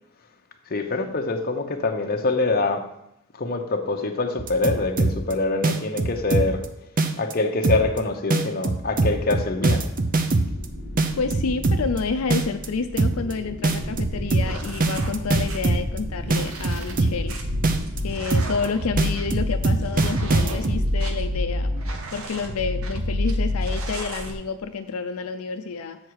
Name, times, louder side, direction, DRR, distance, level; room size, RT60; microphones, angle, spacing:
voice 1, 0.7-2.9 3.3-6.7 7.2-9.9, left 3 dB, 45° left, 4 dB, 0.8 m, -25 dB
sound 1, 4.4-5.3 5.6-6.6 7.0-7.3 7.6-8.0 8.3-10.6 11.0-12.0 12.3-12.7 13.0-13.3 13.6-16.0 16.3-17.3 17.6-18.0 18.3-18.6 19.0-20.8, right 2 dB, 40° right, 0.6 m, -22 dB
sound 2, 10.5-22.2, equal, 60° right, 1.5 m, -37 dB
voice 2, 11.2-17.3 18.0-21.7 22.1-26.0, left 5 dB, 85° left, 8 dB, 0.5 m, -29 dB
sound 3, 13.7-24.3, left 1 dB, 80° right, 1.0 m, -29 dB
7.2 x 6.4 x 4.7 m, 0.79 s
head